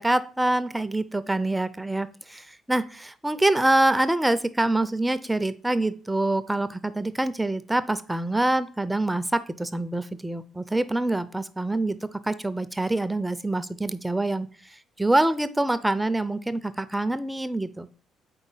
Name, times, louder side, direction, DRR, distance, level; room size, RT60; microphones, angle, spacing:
voice 1, 0.0-12.0 12.2-14.5 15.0-17.9, right 2 dB, 10° right, 14 dB, 0.4 m, -25 dB
4.9 x 3.9 x 5.4 m, 0.41 s
supercardioid pair, 65°, 0 cm